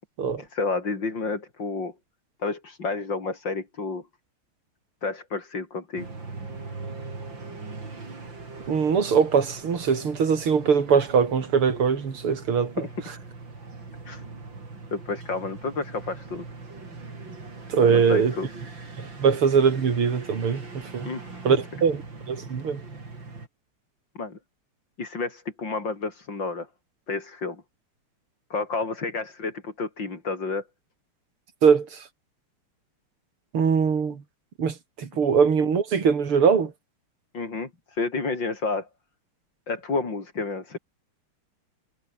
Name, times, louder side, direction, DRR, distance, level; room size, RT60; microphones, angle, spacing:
voice 1, 0.4-1.9 2.4-4.1 5.0-6.1 12.8-12.9 14.0-14.2 14.9-16.4 17.8-18.5 21.0-21.4 24.1-24.4 25.0-26.7 27.1-27.6 28.5-30.6 37.3-38.9 39.7-40.8, left 3 dB, 55° left, 4.9 m, -30 dB
sound 1, 6.0-23.5, right 3 dB, 60° right, 5.3 m, -41 dB
voice 2, 8.7-12.9 17.7-18.3 19.0-21.1 21.5-22.0 22.3-22.8 31.6-32.0 33.5-34.2 34.6-36.7, right 6 dB, 80° right, 3.6 m, -22 dB
omnidirectional pair, 2.4 m